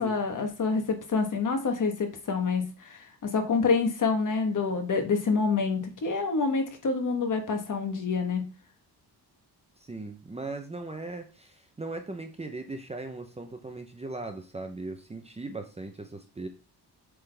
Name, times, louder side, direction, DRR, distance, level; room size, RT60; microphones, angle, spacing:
voice 1, 0.0-8.4, left 4 dB, 50° left, 5 dB, 1.3 m, -27 dB
voice 2, 9.8-16.5, right 2 dB, 15° right, 5 dB, 0.7 m, -38 dB
7.9 x 3.8 x 3.4 m, 0.34 s
wide cardioid pair, 155°, 39 cm